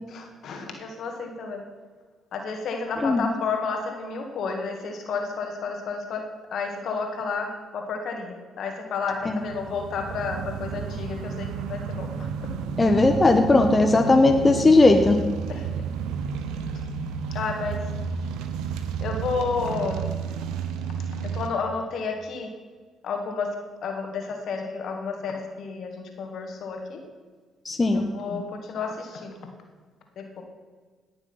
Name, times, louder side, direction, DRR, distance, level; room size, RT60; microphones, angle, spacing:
voice 1, 0.1-1.6 2.3-6.2 6.5-12.3 15.5-15.7 17.3-17.9 19.0-20.1 21.3-22.5 23.0-23.5 23.8-27.0 27.9-29.4 30.2-30.4, left 4 dB, 65° left, 3 dB, 2.2 m, -31 dB
sound 1, 9.2-21.5, right 6 dB, 80° right, 0.9 m, -32 dB
voice 2, 12.8-15.2 27.6-28.0, left 2 dB, 25° left, 4 dB, 1.3 m, -18 dB
18.5 x 6.9 x 5.8 m, 1.5 s
hypercardioid pair, 55°, 0 cm